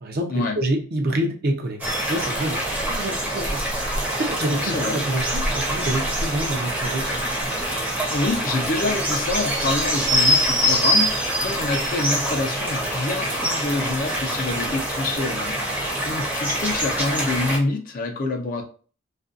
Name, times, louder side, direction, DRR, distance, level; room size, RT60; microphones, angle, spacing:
voice 1, 0.0-2.6 2.9-3.6 4.2-7.2, right 1 dB, 50° right, 3 dB, 0.5 m, -27 dB
sound 1, 1.8-17.6, equal, 10° right, 0.6 m, -24 dB
voice 2, 4.5-5.0 8.1-18.6, left 2 dB, 45° left, 3 dB, 0.5 m, -27 dB
2.5 x 2.2 x 2.4 m, 0.40 s
head